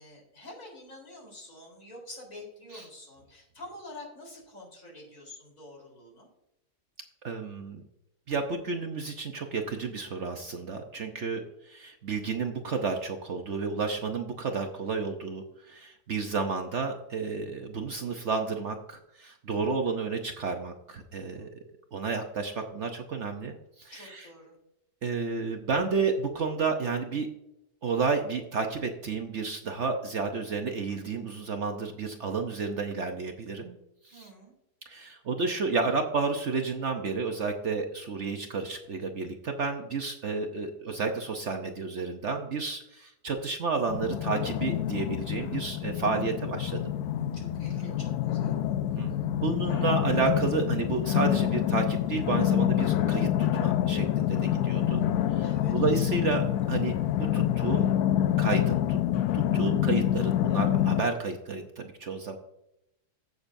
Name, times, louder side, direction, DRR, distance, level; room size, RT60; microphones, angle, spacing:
voice 1, 0.0-6.3 21.2-21.5 23.9-24.6 34.1-34.5 47.2-48.9 55.4-55.8, left 1 dB, 55° left, -1 dB, 4.3 m, -47 dB
voice 2, 7.2-7.8 8.3-21.5 21.9-24.3 25.0-27.3 27.8-33.8 34.0-34.3 34.9-47.0 49.0-49.1 49.4-55.5 55.7-57.8 58.4-59.0 59.3-62.4, right 4 dB, 55° right, 4 dB, 1.0 m, -31 dB
sound 1, 43.9-61.0, left 11 dB, 80° left, 1.1 m, -27 dB
15.5 x 6.7 x 2.6 m, 0.83 s
omnidirectional pair, 1.7 m